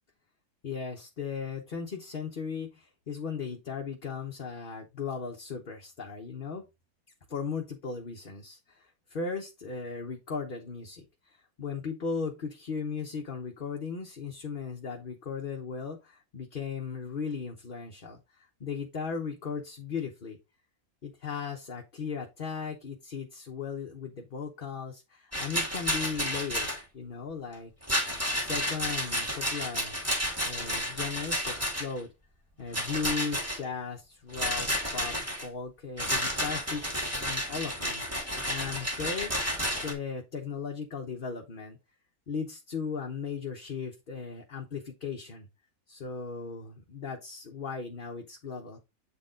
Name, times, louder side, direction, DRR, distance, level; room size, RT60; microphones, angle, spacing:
voice 1, 0.6-6.6 7.3-20.4 21.0-27.7 28.3-30.0 30.4-32.1 32.6-38.0 38.4-39.3 39.8-41.8 42.3-45.5 45.9-48.8, left 5 dB, 40° left, 1 dB, 1.0 m, -37 dB
Rattle, 25.3-26.8 27.8-32.0 32.7-33.6 34.3-35.5 36.0-39.9, equal, 10° right, 2.1 m, -31 dB
8.0 x 4.1 x 3.7 m, 0.24 s
omnidirectional pair, 1.6 m